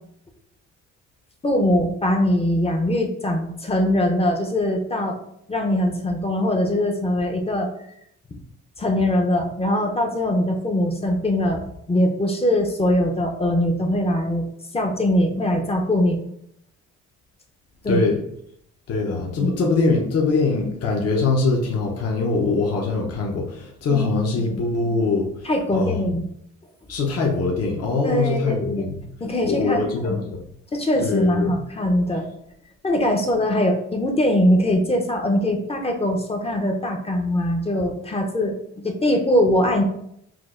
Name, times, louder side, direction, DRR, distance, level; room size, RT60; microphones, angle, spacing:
voice 1, 1.4-5.2 5.5-7.7 8.8-14.4 14.7-16.2 17.8-18.0 19.4-19.5 23.9-24.6 25.4-26.2 28.0-28.9 29.2-30.2 30.7-32.3 32.8-39.8, left 1 dB, 20° left, 2 dB, 0.6 m, -22 dB
voice 2, 17.9-18.2 18.9-26.0 26.9-28.9 29.4-30.4 31.0-31.5, left 3 dB, 55° left, 0 dB, 0.7 m, -23 dB
6.0 x 2.2 x 2.4 m, 0.73 s
cardioid pair, 90°, 30 cm